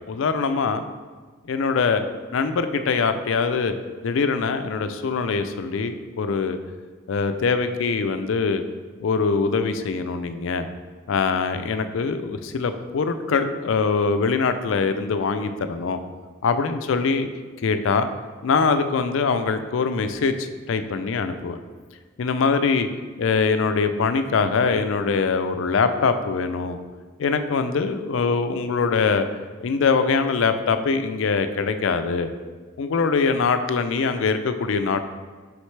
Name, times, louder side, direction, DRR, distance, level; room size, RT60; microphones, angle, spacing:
voice 1, 0.1-0.8 1.5-2.0 2.3-3.7 4.0-6.6 7.1-8.6 9.0-10.7 11.1-16.0 16.4-17.3 17.6-18.1 18.4-21.6 22.2-22.9 23.2-26.8 27.2-29.3 29.6-32.3 32.8-35.0, left 5 dB, 70° left, 9 dB, 0.4 m, -23 dB
6.3 x 5.1 x 3.2 m, 1.4 s
head